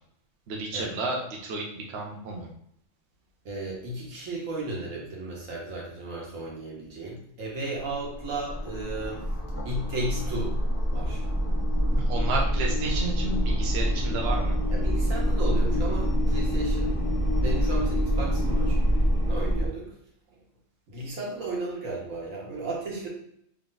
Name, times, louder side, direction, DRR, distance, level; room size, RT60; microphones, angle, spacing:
voice 1, 0.5-2.5 11.9-14.6, right 3 dB, 60° right, 0 dB, 0.8 m, -32 dB
voice 2, 3.4-9.3 9.6-10.6 10.9-11.2 14.7-17.0 17.4-18.8 19.2-20.0 20.3-20.4 20.9-23.1, right 2 dB, 80° right, -3 dB, 1.5 m, -34 dB
sound 1, 7.9-19.7, equal, 15° left, 0.6 m, -26 dB
3.3 x 2.4 x 3.8 m, 0.72 s
omnidirectional pair, 1.4 m